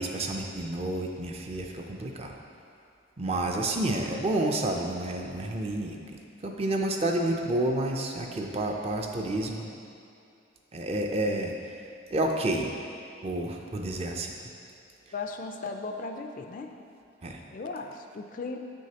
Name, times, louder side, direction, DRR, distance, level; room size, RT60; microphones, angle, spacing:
voice 1, 0.0-2.4 3.2-6.0 6.4-9.7 10.7-11.5 12.1-12.7 13.2-14.3 17.2-17.4, right 1 dB, 30° right, 2 dB, 0.4 m, -29 dB
voice 2, 15.1-16.7 17.5-18.6, left 3 dB, 45° left, 4 dB, 0.3 m, -36 dB
7.5 x 6.2 x 2.9 m, 2.5 s
head